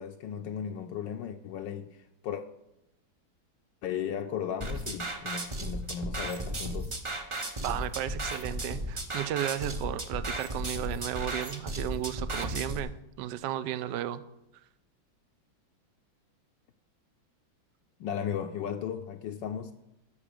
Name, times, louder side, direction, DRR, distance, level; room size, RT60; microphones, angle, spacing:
voice 1, 0.0-2.4 3.8-6.9 18.0-19.7, left 8 dB, 75° left, 1.2 m, -36 dB
sound 1, 4.6-12.8, right 1 dB, 40° right, 0.4 m, -35 dB
voice 2, 7.6-12.9 13.2-14.2, right 12 dB, 75° right, 1.1 m, -34 dB
12.0 x 7.1 x 5.1 m
omnidirectional pair, 2.1 m